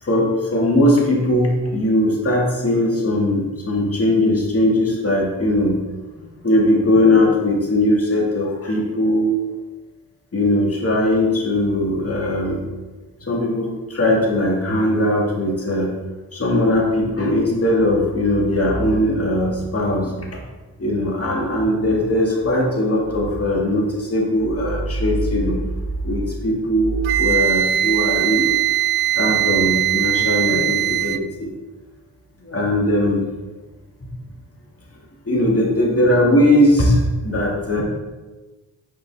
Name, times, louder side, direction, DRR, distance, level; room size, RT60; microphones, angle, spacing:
voice 1, 0.0-5.8 6.1-6.2 6.4-9.4 10.3-12.6 13.2-16.0 16.3-20.4 20.8-25.6 26.0-28.6 29.1-31.5 32.4-33.2 34.0-34.1 35.3-37.8, left 1 dB, 30° left, -2 dB, 2.1 m, -19 dB
Wind instrument woodwind instrument, 27.0-31.2, right 13 dB, 60° right, 0.5 m, -20 dB
6.1 x 5.0 x 3.5 m, 1.2 s
supercardioid pair, 50°, 47 cm